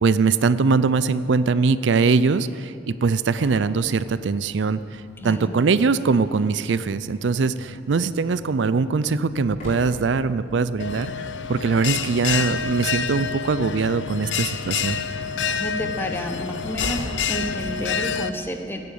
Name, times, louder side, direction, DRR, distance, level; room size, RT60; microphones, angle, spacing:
voice 1, 0.0-11.1 11.5-15.0, right 4 dB, 80° right, 15 dB, 0.5 m, -22 dB
Engine / Slam, 3.0-18.1, left 1 dB, 45° left, 4.7 m, -43 dB
voice 2, 5.2-5.5 15.4-18.8, equal, 10° left, 4 dB, 1.1 m, -31 dB
Bell, 10.8-18.3, left 6 dB, 80° left, 0.7 m, -28 dB
14.5 x 11.0 x 8.6 m, 2.6 s
head